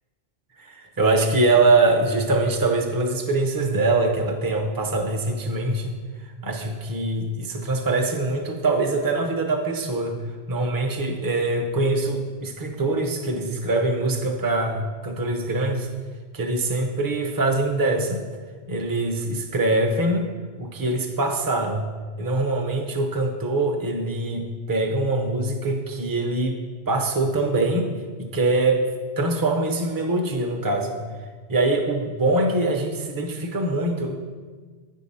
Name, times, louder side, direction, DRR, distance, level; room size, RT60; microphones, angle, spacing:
voice 1, 0.6-5.9 6.4-10.2 10.5-15.9 16.3-18.2 18.7-20.3 20.6-21.9 22.2-26.6 26.9-27.9 28.2-28.8 29.2-31.0 31.5-34.2, right 2 dB, 25° right, 3 dB, 0.6 m, -23 dB
8.7 x 3.7 x 5.5 m, 1.5 s
omnidirectional pair, 1.1 m